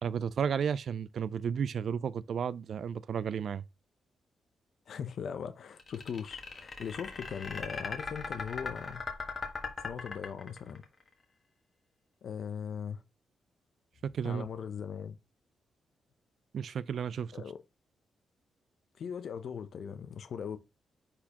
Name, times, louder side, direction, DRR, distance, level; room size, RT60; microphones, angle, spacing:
voice 1, 0.0-3.6 14.0-14.5 16.5-17.3, right 7 dB, 55° right, 0.4 m, -33 dB
voice 2, 4.9-9.0 9.8-10.8 12.2-13.0 14.2-15.2 17.3-17.6 19.0-20.6, left 7 dB, 60° left, 0.7 m, -39 dB
sound 1, 5.8-10.8, left 4 dB, 35° left, 1.6 m, -38 dB
10.0 x 4.3 x 2.9 m
wide cardioid pair, 150°, 0 cm